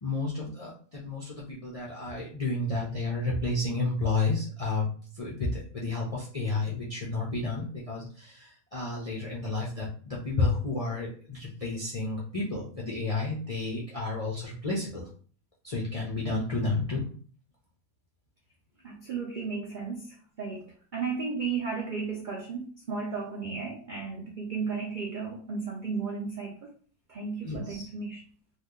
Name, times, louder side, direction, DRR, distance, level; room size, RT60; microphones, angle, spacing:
voice 1, 0.0-4.9 5.2-15.0 15.6-17.1 27.4-27.9, left 3 dB, 55° left, -5 dB, 0.4 m, -31 dB
voice 2, 18.8-26.7 27.1-28.2, right 5 dB, 75° right, -2 dB, 0.4 m, -34 dB
2.8 x 2.3 x 3.6 m, 0.43 s
omnidirectional pair, 1.7 m